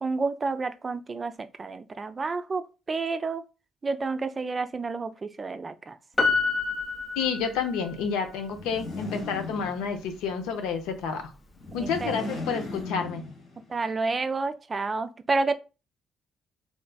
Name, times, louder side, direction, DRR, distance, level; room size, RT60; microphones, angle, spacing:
voice 1, 0.0-3.4 3.8-6.0 11.8-12.1 13.7-15.5, right 3 dB, 35° right, 0.4 m, -30 dB
Piano, 6.2-8.0 8.3-8.4, left 4 dB, 35° left, 0.7 m, -27 dB
voice 2, 7.2-11.3 11.7-13.2, left 6 dB, 80° left, 0.6 m, -30 dB
sound 1, 8.5-10.2 11.6-13.7, left 2 dB, 60° left, 1.6 m, -37 dB
3.3 x 3.1 x 2.3 m
hypercardioid pair, 55°, 0 cm